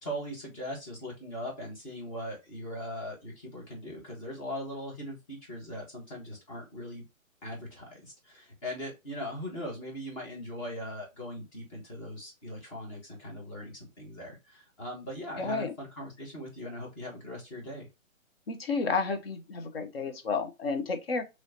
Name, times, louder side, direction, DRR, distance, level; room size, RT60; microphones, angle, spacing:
voice 1, 0.0-7.0 7.4-17.9, equal, 25° left, 1.4 m, -40 dB
voice 2, 15.4-15.7 18.5-21.2, left 4 dB, 45° left, 0.7 m, -31 dB
4.3 x 3.1 x 2.7 m
hypercardioid pair, 150°, 42 cm